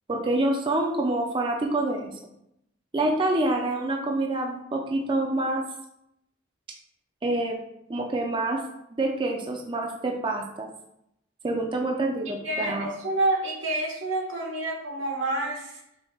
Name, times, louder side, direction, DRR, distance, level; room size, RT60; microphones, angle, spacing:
voice 1, 0.1-2.1 2.9-5.6 7.2-7.6 7.9-8.6 8.9-10.7 11.4-12.9, right 2 dB, 25° right, 1 dB, 0.5 m, -27 dB
voice 2, 12.4-15.7, right 2 dB, 85° right, -1 dB, 1.2 m, -28 dB
5.3 x 4.2 x 2.3 m, 0.78 s
head